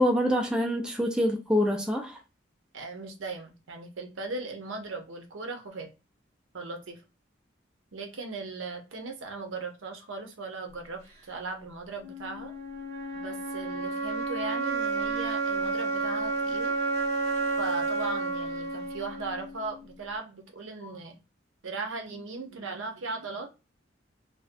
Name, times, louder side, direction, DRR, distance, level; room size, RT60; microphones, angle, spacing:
voice 1, 0.0-2.2, left 1 dB, 5° right, 0.3 m, -25 dB
voice 2, 2.7-5.9 6.5-7.0 7.9-11.0 11.3-12.5 13.1-16.7 17.6-21.2 21.6-23.5, right 3 dB, 80° right, 0.7 m, -38 dB
sound 1, 12.0-20.0, right 3 dB, 35° right, 1.1 m, -31 dB
2.5 x 2.1 x 2.5 m
head